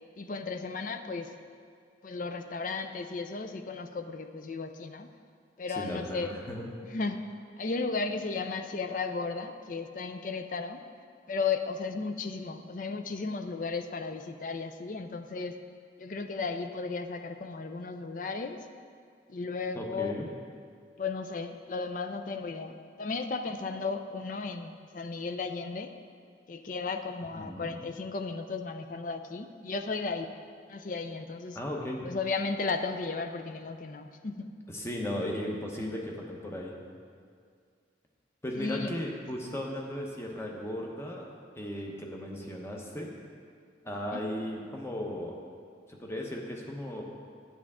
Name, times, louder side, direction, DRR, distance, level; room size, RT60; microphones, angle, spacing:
voice 1, 0.2-1.3 2.0-5.1 5.6-6.4 6.9-7.2 7.6-10.8 11.3-15.6 16.0-18.6 19.3-20.1 21.0-25.9 26.5-30.3 30.7-31.6 32.0-34.5 38.6-38.9 44.1-44.2, left 4 dB, 45° left, 8 dB, 0.4 m, -34 dB
voice 2, 5.7-6.6 19.7-20.3 27.4-27.7 31.5-32.1 34.7-36.8 38.4-41.3 41.6-43.1 43.8-45.4 45.9-47.0, left 1 dB, 15° left, -1 dB, 0.9 m, -36 dB
9.3 x 8.6 x 3.6 m, 2.2 s
head